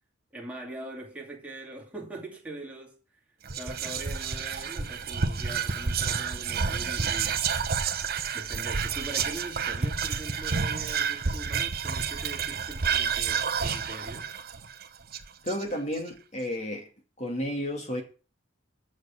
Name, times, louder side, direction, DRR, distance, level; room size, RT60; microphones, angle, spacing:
voice 1, 0.3-3.0 3.6-7.4 8.3-14.3, right 2 dB, 5° right, 2.5 m, -42 dB
Whispering, 3.5-15.9, right 6 dB, 50° right, 1.0 m, -30 dB
voice 2, 15.4-16.9 17.2-18.0, equal, 35° left, 2.5 m, -32 dB
8.4 x 6.5 x 7.2 m
head